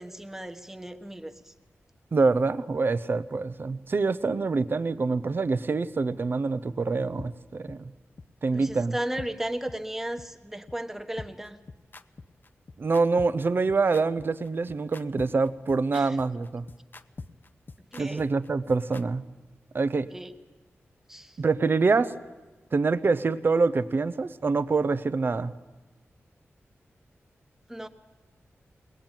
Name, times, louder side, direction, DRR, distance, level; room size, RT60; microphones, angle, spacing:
voice 1, 0.0-1.5 8.5-11.6 15.9-16.2 17.9-18.3 20.1-20.3 21.1-21.4 27.7-27.9, right 1 dB, 10° right, 6 dB, 1.2 m, -35 dB
voice 2, 2.1-7.9 8.4-9.0 12.8-16.7 18.0-19.3 19.7-20.1 21.4-22.2 22.7-25.5, right 4 dB, 50° right, 14 dB, 0.8 m, -25 dB
sound 1, 7.2-7.3 7.7-7.8 8.2-8.3 8.7-8.8 9.2-9.3 9.7-9.8 10.2-10.3 10.7-10.8 11.2-19.0, left 3 dB, 45° left, 0.8 m, -43 dB
22.0 x 19.0 x 9.0 m, 1.2 s
wide cardioid pair, 100°, 5 cm